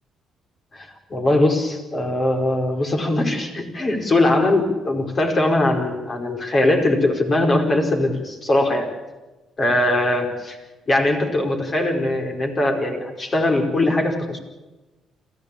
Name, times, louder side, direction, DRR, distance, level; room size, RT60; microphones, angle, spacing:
voice 1, 0.7-8.9 9.6-10.6 10.9-14.4, left 1 dB, 40° left, 3 dB, 4.9 m, -21 dB
27.0 x 15.0 x 8.7 m, 1.1 s
cardioid pair, 90°, 0 cm